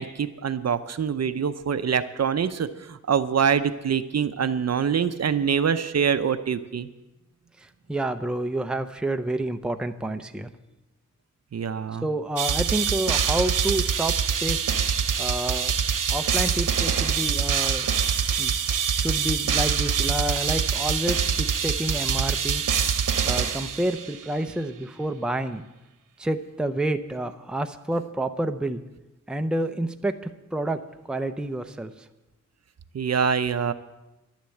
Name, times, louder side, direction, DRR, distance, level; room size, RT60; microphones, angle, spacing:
voice 1, 0.0-6.9 11.5-12.0 32.9-33.7, right 7 dB, 55° right, 12 dB, 0.6 m, -25 dB
voice 2, 7.6-10.5 12.0-14.6 15.2-15.7 16.1-17.9 18.4-18.5 18.9-22.6 23.2-25.6 26.2-28.8 29.3-30.2 30.5-30.8 31.1-31.9, right 1 dB, 5° right, 7 dB, 0.6 m, -29 dB
sound 1, 12.4-24.3, right 7 dB, 85° right, 0.9 m, -25 dB
11.5 x 10.5 x 7.8 m, 1.0 s
wide cardioid pair, 140°, 31 cm